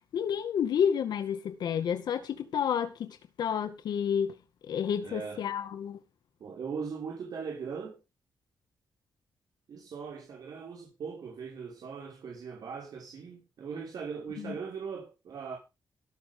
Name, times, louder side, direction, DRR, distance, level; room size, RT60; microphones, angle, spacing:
voice 1, 0.1-4.3 4.7-6.0 14.4-14.5, left 8 dB, 75° left, 2.1 m, -30 dB
voice 2, 5.0-5.4 6.4-8.0 9.7-15.6, right 6 dB, 60° right, 6.2 m, -39 dB
18.0 x 13.0 x 3.9 m
cardioid pair, 120°, 7 cm